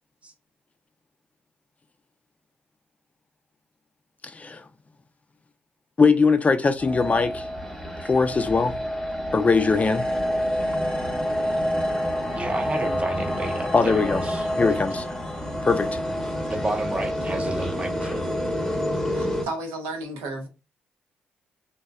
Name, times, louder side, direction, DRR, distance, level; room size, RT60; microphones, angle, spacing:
voice 1, 4.2-4.6 6.0-7.5 8.0-8.8 9.3-10.1 13.7-14.2 14.6-15.0 15.6-16.0, left 4 dB, 30° left, 0.4 m, -21 dB
sound 1, 6.8-19.5, equal, 5° left, 0.8 m, -28 dB
voice 2, 12.3-14.8 16.5-18.3, right 2 dB, 25° right, 0.7 m, -31 dB
voice 3, 19.1-20.5, right 2 dB, 85° right, 0.5 m, -33 dB
2.6 x 2.1 x 2.3 m
hypercardioid pair, 45°, 5 cm